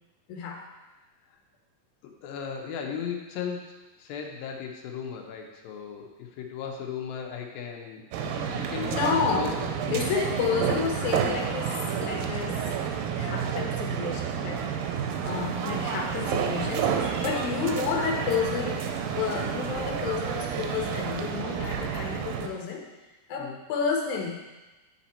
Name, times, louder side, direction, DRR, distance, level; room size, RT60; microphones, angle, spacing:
voice 1, 0.3-0.6 9.0-9.5 9.9-12.7 13.2-14.7 15.2-18.9 19.2-22.9 23.3-24.5, left 6 dB, 70° left, 0 dB, 2.3 m, -30 dB
voice 2, 2.0-10.0 23.4-23.6, left 7 dB, 85° left, 1 dB, 2.5 m, -36 dB
sound 1, 8.1-22.5, right 7 dB, 90° right, 2.5 m, -30 dB
sound 2, 15.2-21.3, right 1 dB, 40° left, 0.5 m, -46 dB
9.9 x 4.3 x 4.2 m, 1.1 s
omnidirectional pair, 4.0 m